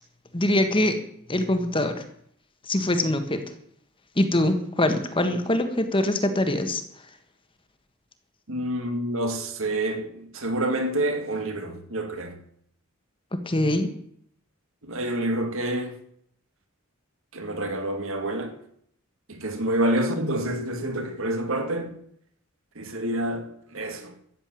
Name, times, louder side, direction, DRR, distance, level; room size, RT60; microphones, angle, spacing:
voice 1, 0.3-1.0 1.3-2.0 2.7-3.4 4.2-6.8 13.3-13.9, left 1 dB, 25° left, 1.5 m, -23 dB
voice 2, 8.5-12.3 14.8-15.9 17.3-18.5 19.3-21.9 22.8-24.1, right 1 dB, 65° right, 2.3 m, -28 dB
13.5 x 7.9 x 9.2 m
head